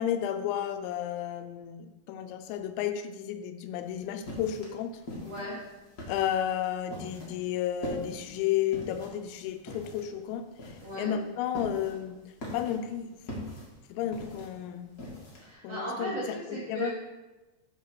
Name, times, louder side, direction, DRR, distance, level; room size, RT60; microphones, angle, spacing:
voice 1, 0.0-4.9 6.1-12.2 12.5-13.1 13.9-14.9 15.6-16.2 16.5-16.9, left 10 dB, 85° left, 8 dB, 2.9 m, -32 dB
sound 1, 3.8-15.5, left 1 dB, 65° left, 0.9 m, -42 dB
voice 2, 5.2-5.6 10.8-11.1 15.4-16.9, right 2 dB, 70° right, -6 dB, 1.5 m, -36 dB
9.8 x 4.2 x 6.0 m, 1.1 s
omnidirectional pair, 5.2 m